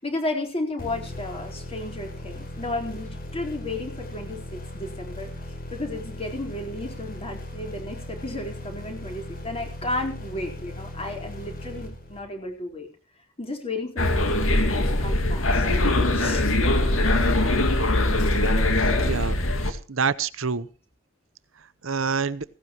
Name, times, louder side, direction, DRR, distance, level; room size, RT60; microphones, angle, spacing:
voice 1, 0.0-5.3 5.7-12.9 13.4-15.7 16.1-16.5, left 2 dB, 30° left, 3 dB, 4.3 m, -33 dB
sound 1, 0.8-12.5, left 1 dB, 45° left, 5.0 m, -38 dB
sound 2, 14.0-19.7, left 1 dB, 90° left, 2.3 m, -22 dB
voice 2, 18.8-19.4 19.7-20.7 21.8-22.4, right 5 dB, 80° right, 16 dB, 0.9 m, -27 dB
17.5 x 16.5 x 3.0 m, 0.36 s
head